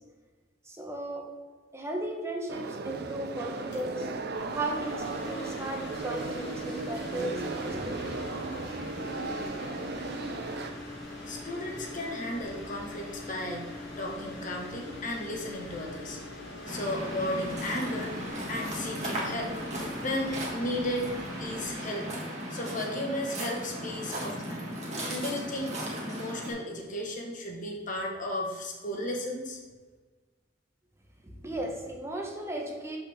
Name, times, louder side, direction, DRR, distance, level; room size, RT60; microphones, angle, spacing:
voice 1, 0.6-1.3 1.7-4.1 4.5-8.0 31.2-33.0, right 1 dB, 15° right, 0 dB, 1.1 m, -36 dB
sound 1, 2.5-10.7, right 3 dB, 60° right, 0.6 m, -36 dB
sound 2, 3.6-21.7, left 1 dB, 65° left, 2.1 m, -42 dB
voice 2, 11.3-13.7 14.0-16.2 16.7-18.2 18.5-19.5 20.0-21.1 21.4-22.2 22.5-24.6 25.1-25.8 26.1-29.6, left 1 dB, 45° left, 0 dB, 1.3 m, -34 dB
Waves surf, 16.6-26.5, equal, 40° right, 1.7 m, -36 dB
6.8 x 5.7 x 3.5 m, 1.4 s
head